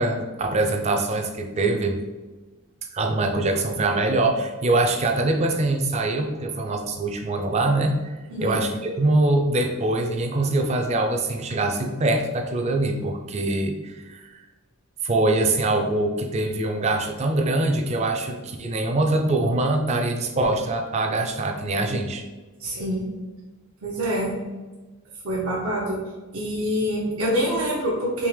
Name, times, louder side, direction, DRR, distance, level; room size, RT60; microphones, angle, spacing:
voice 1, 0.0-2.0 2.9-14.4 15.0-22.2, right 2 dB, 30° right, 4 dB, 0.4 m, -23 dB
voice 2, 22.6-23.0 23.8-24.3 25.2-26.0 26.3-28.3, equal, 80° right, -5 dB, 0.7 m, -25 dB
3.6 x 2.8 x 3.2 m, 1.2 s
head